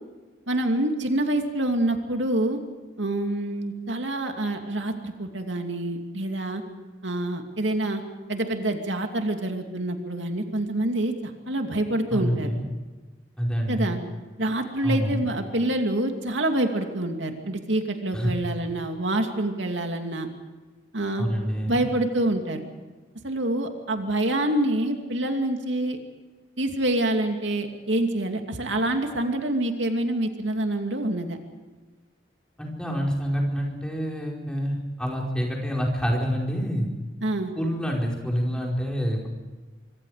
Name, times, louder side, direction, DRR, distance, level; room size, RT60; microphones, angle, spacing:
voice 1, 0.5-2.6 3.0-6.6 7.0-8.0 8.3-12.5 13.7-14.0 14.4-20.3 20.9-21.3 21.7-22.6 23.2-26.0 26.6-31.4 37.2-37.5, right 1 dB, 85° right, 4 dB, 2.6 m, -26 dB
voice 2, 12.1-12.6 13.4-14.0 14.8-15.2 18.1-18.3 21.2-21.8 32.6-36.9 37.5-39.3, equal, 5° left, -2 dB, 4.8 m, -27 dB
25.5 x 24.5 x 5.0 m, 1.3 s
head